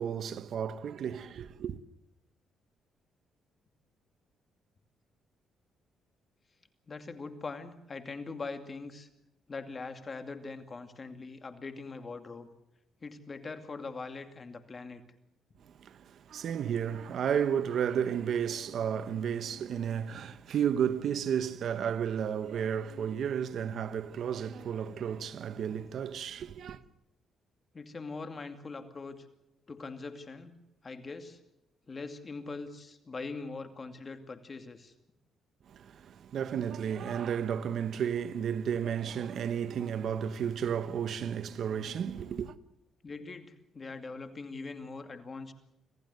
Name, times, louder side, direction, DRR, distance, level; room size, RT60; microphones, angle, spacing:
voice 1, 0.0-1.8 15.8-26.8 35.7-42.5, right 8 dB, 65° right, 1.0 m, -32 dB
voice 2, 6.9-9.1 9.5-12.5 13.0-15.0 27.7-29.3 29.7-30.6 30.8-31.4 31.9-34.9 39.4-39.5 43.0-45.5, left 4 dB, 35° left, 2.4 m, -42 dB
26.0 x 15.5 x 8.0 m
cardioid pair, 90°, 0 cm